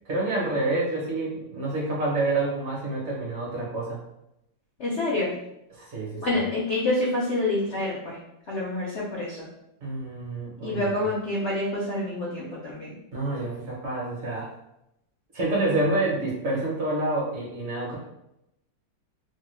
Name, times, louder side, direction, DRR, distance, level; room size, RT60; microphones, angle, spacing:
voice 1, 0.0-4.0 5.7-6.4 9.8-11.1 13.1-14.5 15.3-18.0, right 2 dB, 45° right, -5 dB, 1.0 m, -28 dB
voice 2, 4.8-5.3 6.2-8.2 8.5-9.4 10.6-12.9, left 2 dB, 70° left, -5 dB, 0.6 m, -27 dB
3.0 x 2.1 x 3.1 m, 0.84 s
omnidirectional pair, 2.0 m